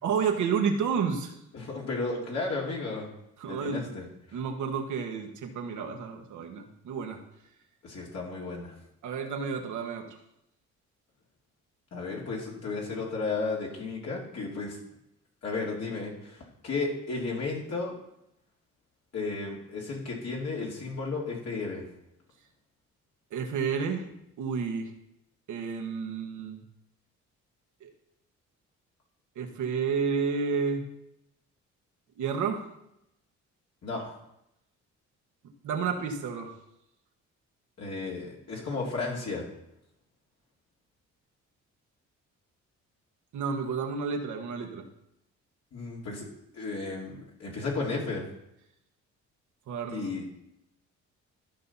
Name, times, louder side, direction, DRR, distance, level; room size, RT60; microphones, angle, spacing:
voice 1, 0.0-1.3 3.4-3.9 4.3-7.2 9.0-10.1 23.3-24.1 24.4-24.9 25.5-26.6 27.8-27.9 29.3-30.9 32.2-32.6 35.6-36.5 43.3-44.8 49.7-50.1, right 6 dB, 75° right, 3 dB, 1.5 m, -30 dB
voice 2, 1.5-3.1 3.5-4.4 7.8-8.7 11.9-14.8 15.4-17.9 19.1-21.9 33.8-34.2 37.8-39.5 45.7-46.3 46.5-48.3 49.9-50.2, left 3 dB, 60° left, -3 dB, 2.5 m, -34 dB
13.5 x 5.5 x 4.2 m, 0.81 s
cardioid pair, 90°, 30 cm